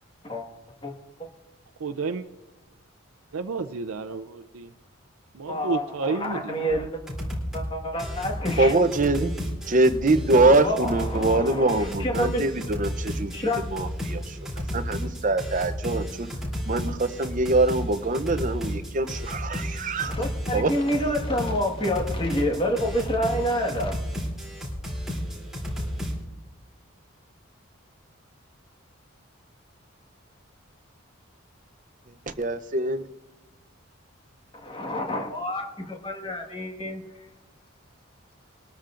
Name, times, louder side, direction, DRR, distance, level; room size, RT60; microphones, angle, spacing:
voice 1, 1.8-2.2 3.3-4.7 5.3-6.5, right 4 dB, 85° right, 7 dB, 0.6 m, -30 dB
voice 2, 5.5-7.0 7.5-8.7 10.3-12.5 13.3-13.6 20.0-23.9 34.5-37.0, equal, 25° left, 1 dB, 1.6 m, -28 dB
sound 1, 6.7-6.8 7.1-7.7 8.0-26.2, equal, ahead, 3.0 m, -32 dB
voice 3, 8.6-9.3 9.7-14.4 14.7-16.3 16.7-20.2 20.5-20.7 32.4-33.0, right 2 dB, 35° right, 10 dB, 0.6 m, -23 dB
22.0 x 13.0 x 2.5 m, 1.0 s
head